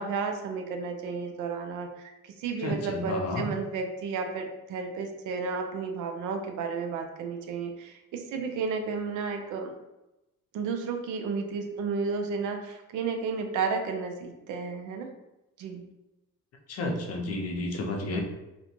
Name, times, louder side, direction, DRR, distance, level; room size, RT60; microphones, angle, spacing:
voice 1, 0.0-9.7 10.5-15.1 15.6-15.8, right 5 dB, 80° right, 4 dB, 0.5 m, -32 dB
voice 2, 2.6-3.5 16.7-18.2, left 2 dB, 55° left, 1 dB, 0.6 m, -31 dB
2.5 x 2.1 x 2.9 m, 0.98 s
cardioid pair, 90°, 30 cm